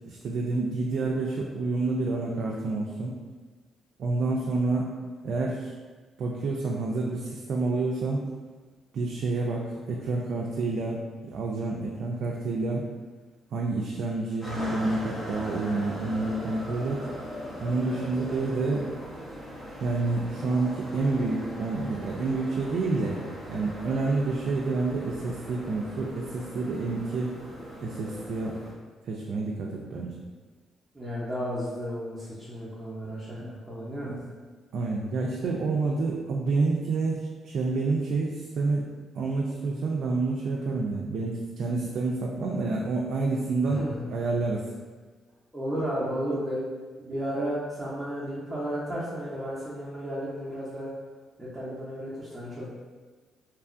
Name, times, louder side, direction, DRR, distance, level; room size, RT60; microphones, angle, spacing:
voice 1, 0.1-3.2 4.0-4.9 5.2-5.7 6.2-8.2 8.9-12.9 13.5-17.0 17.6-18.9 19.8-23.2 23.5-27.3 27.8-28.6 29.0-30.2 33.4-33.5 34.0-34.2 34.7-38.9 39.1-44.7, right 3 dB, 70° right, -2 dB, 0.3 m, -28 dB
sound 1, 14.4-28.7, equal, 25° left, 0.8 m, -40 dB
voice 2, 30.9-34.1 43.6-44.0 45.5-46.6 47.0-50.9 51.4-52.7, equal, 10° right, -10 dB, 0.7 m, -33 dB
2.9 x 2.3 x 2.5 m, 1.4 s
cardioid pair, 90°, 0 cm